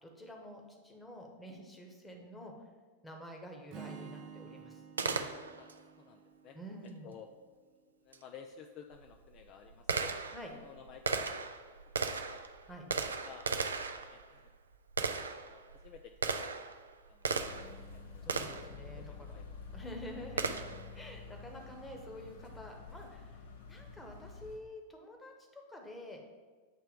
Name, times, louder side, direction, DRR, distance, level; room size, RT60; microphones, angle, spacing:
voice 1, 0.0-2.6 3.0-5.3 6.5-7.1 10.3-10.5 12.7-12.9 18.2-19.4 19.7-20.6 20.9-23.4 23.7-26.2, equal, 10° left, 2 dB, 1.1 m, -48 dB
Strum, 3.7-7.9, right 6 dB, 40° right, 0.9 m, -51 dB
Gunshot gunfire, 5.0-5.8 8.1-8.2 8.9-17.8 18.3-18.8 20.4-20.9, right 4 dB, 70° right, 0.4 m, -37 dB
voice 2, 6.0-6.6 7.0-7.3 8.0-10.1 10.5-11.3 12.0-12.4 13.0-13.5 14.1-14.5 15.1-16.6 17.1-17.6 17.9-18.3 19.0-19.4 20.2-20.3, left 7 dB, 40° left, 5 dB, 0.4 m, -53 dB
sound 1, 17.3-24.6, left 4 dB, 65° left, 0.8 m, -49 dB
8.4 x 3.3 x 5.0 m, 1.4 s
figure-of-eight pair, 90°, 0 cm